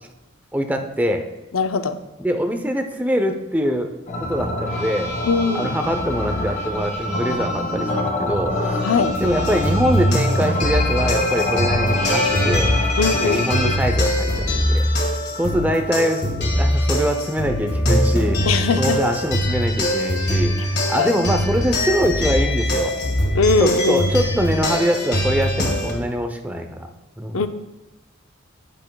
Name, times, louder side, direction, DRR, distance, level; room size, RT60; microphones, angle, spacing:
voice 1, 0.5-1.3 2.2-3.9 4.3-5.2 5.5-8.8 9.2-12.7 13.2-14.9 15.3-18.5 18.8-22.9 23.6-26.9 27.2-27.4, equal, 10° right, 5 dB, 0.6 m, -23 dB
voice 2, 1.5-2.0 5.3-5.7 8.8-9.2 13.0-13.7 18.5-19.0 21.0-21.1 23.3-24.1 27.3-27.5, left 4 dB, 85° left, 9 dB, 0.5 m, -20 dB
sound 1, 4.1-13.8, left 2 dB, 40° left, 1.3 m, -25 dB
sound 2, 9.4-25.9, equal, 55° left, 1.7 m, -22 dB
10.5 x 8.8 x 2.3 m, 1.0 s
head